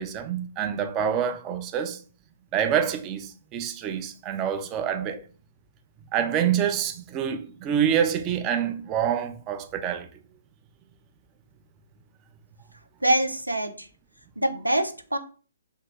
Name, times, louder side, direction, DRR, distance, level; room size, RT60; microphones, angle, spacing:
voice 1, 0.0-2.0 2.5-5.2 6.1-10.1, right 8 dB, 25° right, 0.4 m, -26 dB
voice 2, 13.0-13.9 14.4-15.2, right 1 dB, 90° right, 0.4 m, -24 dB
2.8 x 2.6 x 3.4 m
figure-of-eight pair, 125°, 0 cm